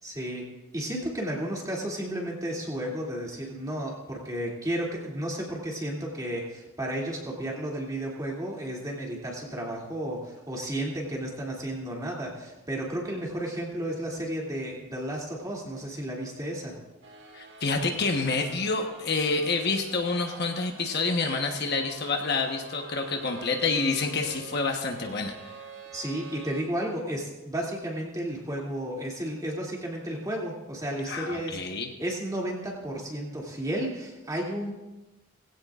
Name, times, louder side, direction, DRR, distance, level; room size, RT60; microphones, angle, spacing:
voice 1, 0.0-0.4 0.7-16.7 25.9-31.6 32.0-34.7, right 1 dB, 15° right, -3 dB, 2.7 m, -33 dB
sound 1, 17.0-26.6, right 3 dB, 55° right, 1.6 m, -46 dB
voice 2, 17.3-25.5 31.1-31.9, left 3 dB, 50° left, 3 dB, 1.2 m, -28 dB
20.0 x 16.0 x 2.5 m, 1.1 s
head